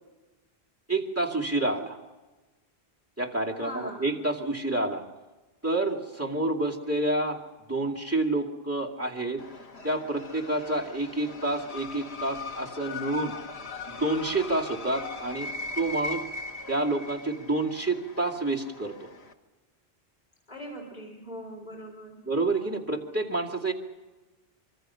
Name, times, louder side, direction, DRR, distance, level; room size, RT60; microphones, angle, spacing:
voice 1, 0.9-2.0 3.2-5.0 5.6-7.4 7.7-9.4 9.8-13.3 13.9-15.5 15.8-16.2 16.7-19.1 22.2-23.7, right 2 dB, 15° right, 0 dB, 2.4 m, -28 dB
voice 2, 3.6-4.1 20.5-22.2, equal, 45° left, -1 dB, 3.9 m, -40 dB
sound 1, 9.4-19.3, left 3 dB, 90° left, 1.9 m, -40 dB
25.0 x 25.0 x 5.7 m, 1.2 s
omnidirectional pair, 1.1 m